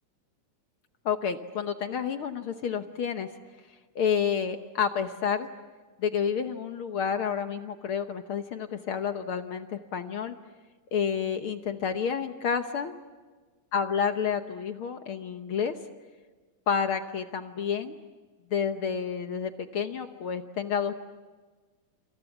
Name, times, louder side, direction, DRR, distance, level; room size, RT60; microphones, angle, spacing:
voice 1, 1.0-3.3 3.9-5.5 6.0-10.3 10.9-12.9 13.7-15.8 16.7-17.9 18.5-20.9, left 7 dB, 65° left, 8 dB, 1.4 m, -29 dB
28.0 x 27.5 x 7.2 m, 1.4 s
omnidirectional pair, 3.5 m